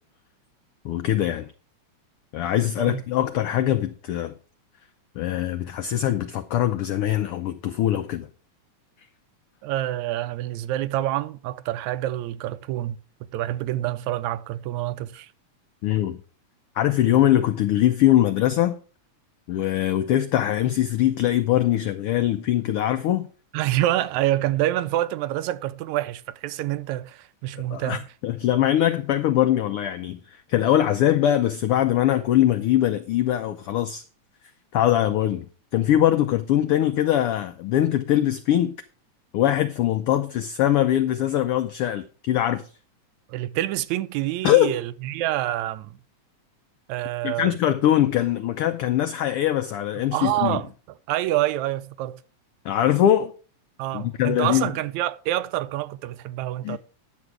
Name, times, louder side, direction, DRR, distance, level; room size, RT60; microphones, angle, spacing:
voice 1, 0.8-1.5 2.3-4.3 5.2-8.3 15.8-16.2 16.8-18.8 19.5-23.3 27.7-34.0 34.7-35.5 35.7-38.7 39.3-42.7 44.4-44.8 47.2-50.6 52.6-53.3 53.9-54.7 56.6-56.8, left 12 dB, 85° left, 1.2 m, -22 dB
voice 2, 9.6-13.0 13.3-15.3 23.5-28.0 43.3-45.9 46.9-47.5 50.1-50.7 51.1-52.2 53.8-56.8, right 14 dB, 85° right, 1.9 m, -27 dB
10.5 x 7.2 x 4.7 m
omnidirectional pair, 3.3 m